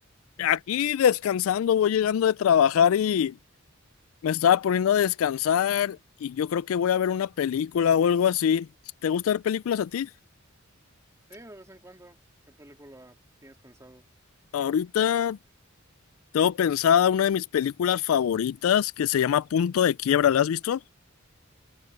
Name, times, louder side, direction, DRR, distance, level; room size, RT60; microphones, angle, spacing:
voice 1, 0.4-3.4 4.2-8.7 9.0-10.1 14.5-15.4 16.3-20.8, left 9 dB, 80° left, 0.3 m, -23 dB
voice 2, 11.3-12.2 12.5-14.1, right 1 dB, 15° right, 3.1 m, -50 dB
head